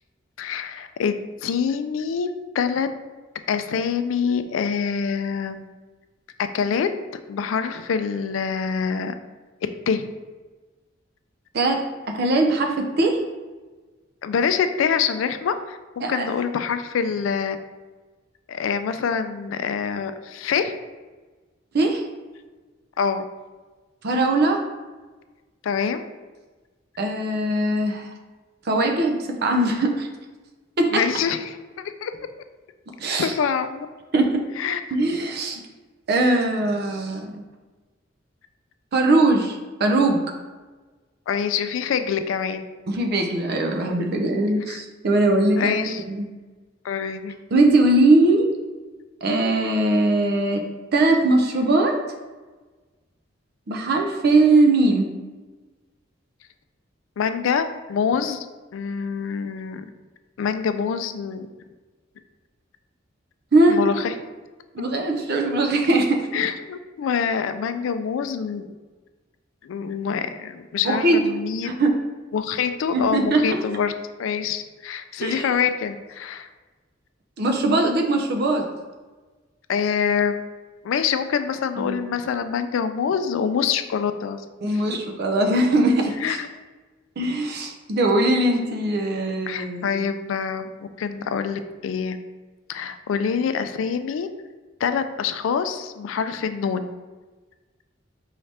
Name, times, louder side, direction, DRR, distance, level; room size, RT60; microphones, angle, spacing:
voice 1, 0.4-2.9 3.5-5.7 6.5-6.9 7.3-9.2 9.9-10.1 14.2-17.6 18.5-20.7 23.0-23.2 25.6-26.1 30.9-31.6 32.0-32.1 33.1-33.9 34.6-34.8 41.3-42.7 44.7-44.8 45.6-46.0 46.8-47.3 57.2-58.5 58.7-59.9 60.4-61.5 63.7-64.1 66.3-68.7 69.6-71.8 72.3-73.9 74.2-76.5 79.7-80.4 80.8-84.4 84.7-84.8 86.2-86.5 89.5-92.2 92.7-94.3 94.8-96.9, left 6 dB, 85° left, 10 dB, 0.3 m, -25 dB
voice 2, 11.5-13.2 16.0-16.3 21.7-22.0 24.0-24.6 27.0-28.1 28.7-30.1 30.8-30.9 33.0-33.3 34.1-34.4 34.9-35.6 36.1-37.4 38.9-40.2 42.9-46.3 47.5-48.5 49.2-50.6 50.9-52.0 53.7-55.1 63.5-63.8 64.7-66.3 70.8-71.2 71.6-72.0 72.9-73.6 75.2-75.5 77.4-78.7 81.8-82.0 84.6-86.4 87.2-90.0, right 2 dB, 55° right, 3 dB, 0.5 m, -20 dB
4.7 x 2.7 x 3.3 m, 1.3 s
head